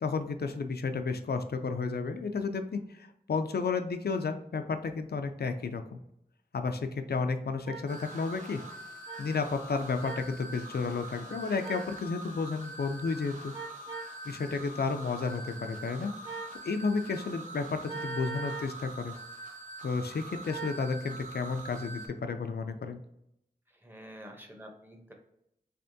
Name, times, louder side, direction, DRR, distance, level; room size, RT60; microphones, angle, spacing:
voice 1, 0.0-6.0 6.5-8.6 9.2-13.5 14.2-16.1 16.6-19.1 19.8-23.0, left 4 dB, 85° left, 7 dB, 0.4 m, -32 dB
sound 1, 7.6-7.8 9.1-9.2 10.0-10.3 11.6-11.9 13.5-14.1 16.2-16.6 17.9-18.7 20.5-20.8, right 4 dB, 30° right, 1.2 m, -40 dB
sound 2, 7.9-22.1, right 2 dB, 50° right, 1.1 m, -44 dB
voice 2, 23.8-25.1, equal, 15° right, 2 dB, 0.8 m, -48 dB
3.5 x 3.3 x 2.6 m, 0.77 s
wide cardioid pair, 65°, 16 cm